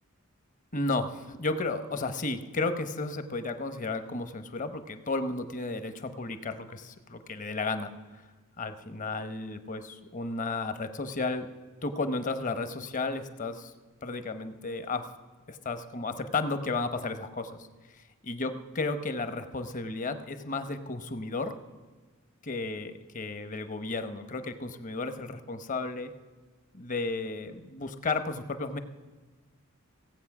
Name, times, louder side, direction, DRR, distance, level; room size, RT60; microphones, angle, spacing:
voice 1, 0.7-7.9 8.6-11.5 11.8-13.7 14.0-15.1 15.5-17.5 18.2-21.5 22.4-26.1 26.7-28.8, left 3 dB, 40° left, 10 dB, 0.9 m, -33 dB
17.0 x 8.2 x 6.0 m, 1.3 s
head